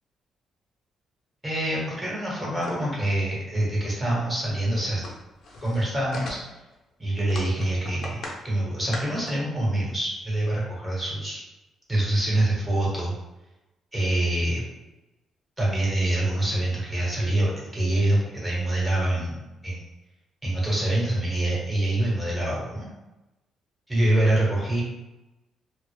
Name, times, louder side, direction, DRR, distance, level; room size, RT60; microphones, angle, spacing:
voice 1, 1.4-5.0 5.6-6.4 7.0-11.4 11.9-13.1 13.9-14.6 15.6-19.8 20.4-22.9 23.9-24.8, right 1 dB, 15° right, -5 dB, 1.1 m, -25 dB
sound 1, 2.6-2.9 3.4-3.5 3.7-3.8 4.1-4.2 4.5-6.7 7.2-8.4 8.7-9.3, left 2 dB, 60° left, 0.5 m, -38 dB
2.0 x 2.0 x 3.1 m, 1.0 s
cardioid pair, 90°, 0 cm